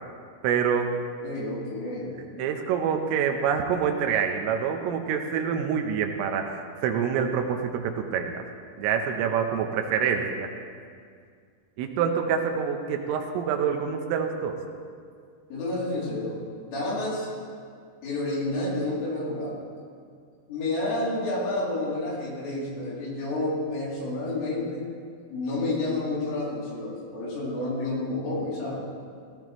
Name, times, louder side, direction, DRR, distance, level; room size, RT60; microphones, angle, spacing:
voice 1, 0.4-0.9 2.4-8.4 8.8-10.5 11.8-14.6, right 7 dB, 80° right, 4 dB, 3.5 m, -26 dB
voice 2, 1.2-2.1 15.5-17.3 18.0-19.7 20.5-24.9 25.3-28.9, left 2 dB, 70° left, -6 dB, 5.4 m, -30 dB
17.0 x 16.5 x 3.1 m, 2.2 s
omnidirectional pair, 6.0 m